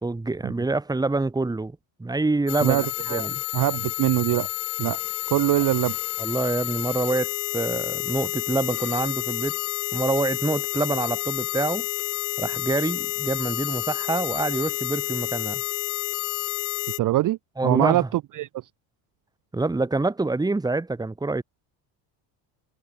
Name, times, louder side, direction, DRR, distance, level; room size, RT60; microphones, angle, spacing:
voice 1, 0.0-3.4 6.2-9.6 9.9-11.9 12.4-15.6 17.6-18.1 19.5-21.4, right 3 dB, 10° right, 1.2 m, -26 dB
sound 1, 2.5-17.0, left 40 dB or more, 80° left, 4.5 m, -30 dB
voice 2, 2.6-3.3 3.5-4.5 4.8-5.0 5.3-6.0 17.0-17.4 17.6-18.5, right 15 dB, 40° right, 0.6 m, -23 dB
supercardioid pair, 95°, 48 cm